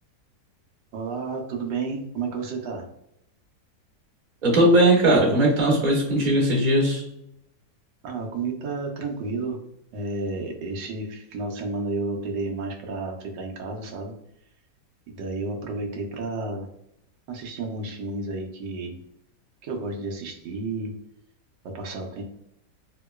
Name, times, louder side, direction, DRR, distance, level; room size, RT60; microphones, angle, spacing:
voice 1, 0.9-2.8 8.0-9.6 9.9-14.1 15.1-16.7 17.3-19.0 19.6-20.9 21.7-22.2, right 3 dB, 85° right, 1 dB, 1.3 m, -31 dB
voice 2, 4.4-7.0, right 1 dB, 30° right, -3 dB, 1.0 m, -19 dB
3.7 x 2.8 x 2.2 m, 0.76 s
omnidirectional pair, 1.9 m